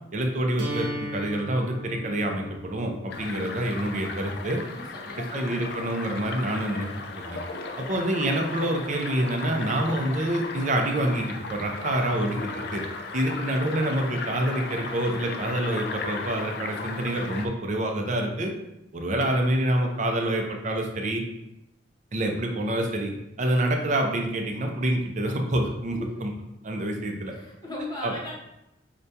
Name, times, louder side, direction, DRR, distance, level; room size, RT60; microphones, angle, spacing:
voice 1, 0.1-4.6 5.1-6.9 7.2-7.4 7.8-12.8 13.1-18.5 18.9-21.2 22.1-23.1 23.4-26.3 26.6-27.3 28.0-28.1, right 1 dB, 45° right, 3 dB, 0.5 m, -27 dB
sound 1, 0.6-6.6, equal, 85° right, 0.9 m, -39 dB
sound 2, 3.1-17.5, left 4 dB, 65° left, 0.4 m, -36 dB
voice 2, 4.6-5.7 25.9-26.3 27.3-28.3, left 1 dB, 25° left, -3 dB, 0.8 m, -38 dB
4.8 x 2.2 x 2.7 m, 0.87 s
head